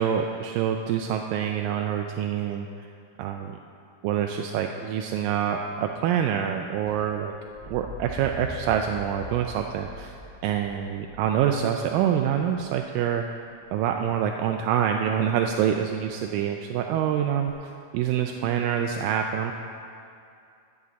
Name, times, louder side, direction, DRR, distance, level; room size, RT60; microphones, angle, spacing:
voice 1, 0.0-2.7 3.2-3.6 4.0-7.3 7.7-10.1 10.4-13.2 13.7-19.5, right 9 dB, 85° right, 3 dB, 2.0 m, -26 dB
sound 1, 6.9-12.8 14.4-14.9 17.5-17.6, right 1 dB, 15° left, 2.6 m, -43 dB
11.0 x 5.2 x 8.1 m, 2.5 s
omnidirectional pair, 4.4 m